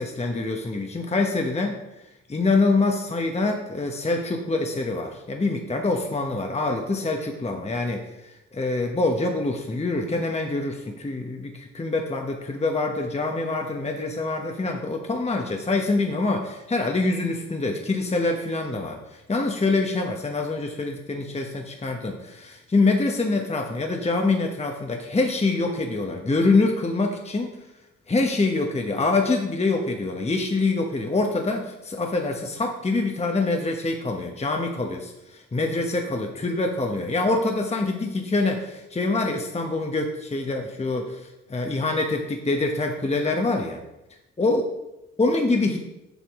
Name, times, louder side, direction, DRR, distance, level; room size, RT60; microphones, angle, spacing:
voice 1, 0.0-1.8 2.3-27.6 28.1-43.8 44.4-44.6 45.2-45.8, left 3 dB, 20° left, 3 dB, 0.9 m, -25 dB
7.1 x 5.8 x 3.6 m, 0.95 s
supercardioid pair, 55°, 30 cm